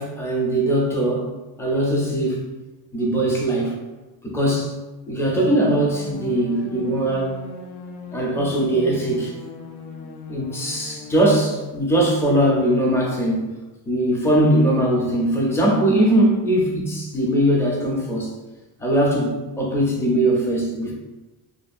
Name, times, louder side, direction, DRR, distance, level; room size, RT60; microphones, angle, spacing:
voice 1, 0.0-1.3 1.6-2.4 2.9-3.8 4.2-4.7 5.1-7.4 8.1-9.3 10.3-13.5 13.9-18.3 18.8-20.9, right 1 dB, 5° left, -3 dB, 0.4 m, -20 dB
sound 1, 5.7-11.7, left 3 dB, 65° left, 0.5 m, -38 dB
2.6 x 2.3 x 2.4 m, 1.1 s
cardioid pair, 115°, 47 cm